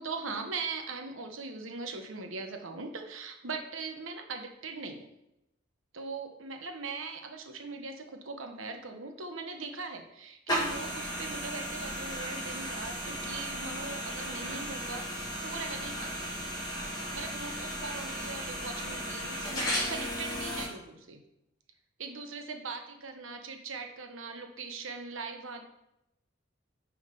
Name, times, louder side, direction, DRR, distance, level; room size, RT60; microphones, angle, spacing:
voice 1, 0.0-5.1 5.9-16.4 17.1-21.2 22.0-25.6, right 4 dB, 80° right, 5 dB, 1.0 m, -40 dB
sound 1, 10.5-20.7, equal, 20° left, 2.0 m, -35 dB
6.3 x 4.8 x 5.6 m, 0.85 s
head